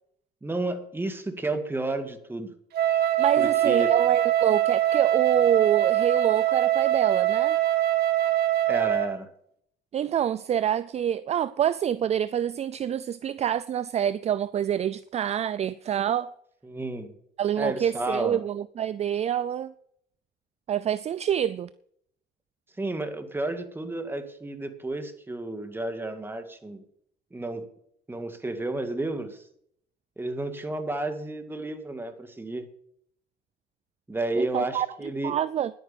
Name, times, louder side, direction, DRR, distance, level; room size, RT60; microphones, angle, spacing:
voice 1, 0.4-2.5 3.4-3.9 8.7-9.3 16.6-17.1 17.6-18.4 22.8-26.8 27.3-27.7 28.1-29.4 30.2-32.7 34.1-35.4, right 2 dB, 15° right, 2.0 m, -31 dB
Wind instrument woodwind instrument, 2.7-9.2, right 12 dB, 70° right, 1.4 m, -23 dB
voice 2, 3.2-7.6 9.9-16.3 17.4-19.7 20.7-21.7 34.4-34.9 35.2-35.7, right 10 dB, 40° right, 0.4 m, -26 dB
10.5 x 9.3 x 7.2 m
cardioid pair, 110°, 17 cm